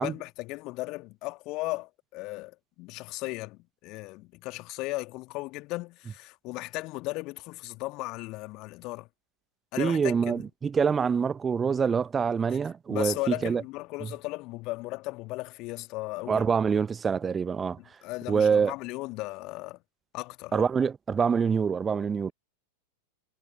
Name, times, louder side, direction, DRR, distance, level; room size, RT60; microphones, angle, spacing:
voice 1, 0.0-9.1 9.7-10.4 12.9-16.4 18.0-19.8 20.1-20.6, left 22 dB, 40° left, 2.3 m, -36 dB
voice 2, 9.8-13.6 16.3-17.8 18.3-18.7 20.5-22.3, right 6 dB, 20° right, 1.0 m, -25 dB
figure-of-eight pair, 90°, 0 cm